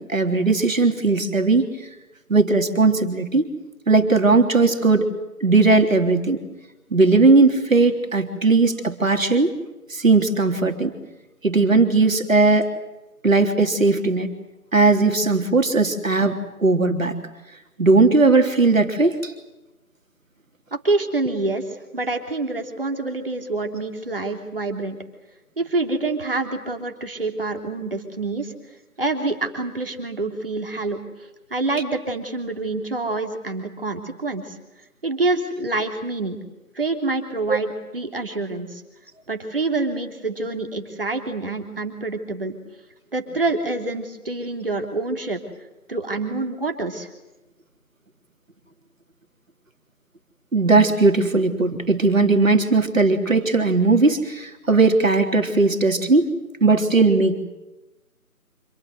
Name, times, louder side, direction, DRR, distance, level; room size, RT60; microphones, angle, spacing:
voice 1, 0.0-1.7 2.3-3.5 3.9-5.1 5.4-6.4 6.9-9.5 9.9-10.9 11.4-12.7 13.2-14.3 14.7-17.2 17.8-19.3 37.5-37.6 50.5-56.3 56.6-57.4, right 3 dB, 60° right, 6 dB, 3.6 m, -18 dB
voice 2, 20.8-21.6 21.9-25.0 25.6-28.5 29.0-31.0 31.5-34.6 35.0-36.4 36.7-38.8 39.3-42.6 43.1-45.4 45.9-47.1, right 3 dB, 40° right, 5 dB, 3.3 m, -26 dB
27.0 x 22.5 x 7.9 m, 1.0 s
figure-of-eight pair, 170°, 45 cm